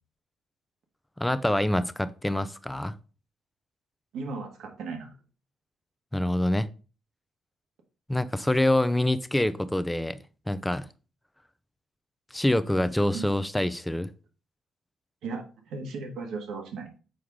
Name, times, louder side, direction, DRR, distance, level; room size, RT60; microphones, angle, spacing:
voice 1, 1.2-2.9 6.1-6.7 8.1-10.2 10.5-10.9 12.3-14.1, left 1 dB, 5° left, 0.5 m, -26 dB
voice 2, 4.1-5.1 13.1-13.3 15.2-16.9, right 4 dB, 80° right, 1.7 m, -36 dB
6.4 x 4.6 x 3.6 m
cardioid pair, 90°, 0 cm